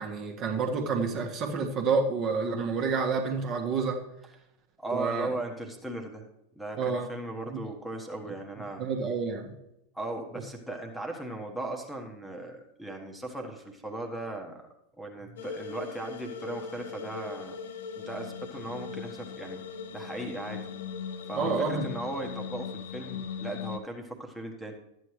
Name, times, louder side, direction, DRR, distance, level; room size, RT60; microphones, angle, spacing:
voice 1, 0.0-4.0 4.9-5.3 6.8-7.1 7.5-7.6 8.8-9.5 21.3-21.9, right 4 dB, 35° right, 2 dB, 1.4 m, -29 dB
voice 2, 4.8-6.2 6.5-8.8 9.9-14.7 15.0-17.6 18.0-19.6 19.9-20.7 21.3-24.7, right 2 dB, ahead, 3 dB, 1.3 m, -37 dB
sound 1, 15.4-23.8, left 6 dB, 60° left, 0.9 m, -39 dB
13.0 x 9.2 x 3.2 m, 0.84 s
figure-of-eight pair, 90°, 0 cm